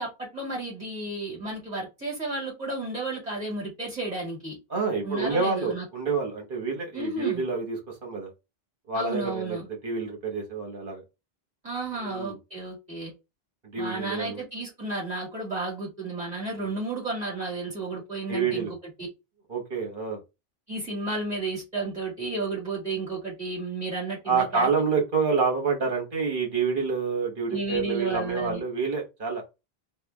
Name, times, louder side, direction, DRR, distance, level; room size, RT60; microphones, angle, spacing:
voice 1, 0.0-4.6 5.0-5.8 6.9-7.4 8.9-9.7 11.6-13.1 13.8-18.8 20.7-24.7 27.5-28.6, right 2 dB, 40° right, 1.9 m, -32 dB
voice 2, 4.7-8.3 8.9-9.6 9.8-11.0 12.0-12.4 13.7-14.4 16.6-16.8 18.3-18.7 19.5-20.2 24.3-29.4, right 5 dB, 55° right, 1.4 m, -28 dB
3.5 x 2.2 x 3.4 m
omnidirectional pair, 1.0 m